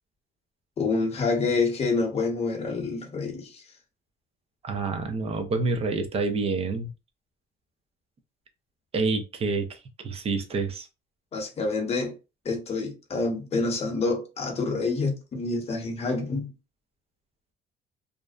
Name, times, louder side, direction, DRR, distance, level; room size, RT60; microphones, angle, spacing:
voice 1, 0.8-3.6 11.3-12.1 12.4-16.5, left 3 dB, 40° left, 0.8 m, -27 dB
voice 2, 4.6-6.9 8.9-9.8 10.0-10.9, right 3 dB, 35° right, 0.6 m, -27 dB
2.5 x 2.1 x 2.3 m
cardioid pair, 110°, 17 cm